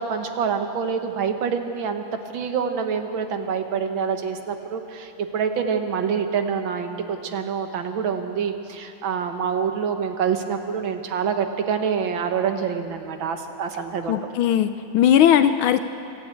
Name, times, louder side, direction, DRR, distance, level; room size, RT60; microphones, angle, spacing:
voice 1, 0.0-2.0 2.3-14.3, right 6 dB, 70° right, 6 dB, 1.9 m, -26 dB
voice 2, 14.1-15.8, left 10 dB, 80° left, 10 dB, 1.5 m, -18 dB
25.5 x 12.0 x 8.5 m, 2.8 s
omnidirectional pair, 2.3 m